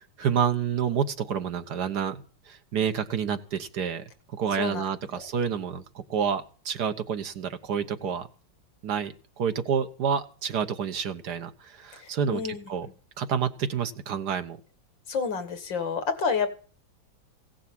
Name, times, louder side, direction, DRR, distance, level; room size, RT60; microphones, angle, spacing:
voice 1, 0.2-8.3 8.8-12.4 12.7-12.9 13.2-14.6, right 7 dB, 60° right, 8 dB, 1.6 m, -29 dB
voice 2, 12.0-12.7 15.1-16.5, left 5 dB, 75° left, 10 dB, 2.3 m, -29 dB
16.5 x 7.1 x 7.6 m, 0.39 s
omnidirectional pair, 2.0 m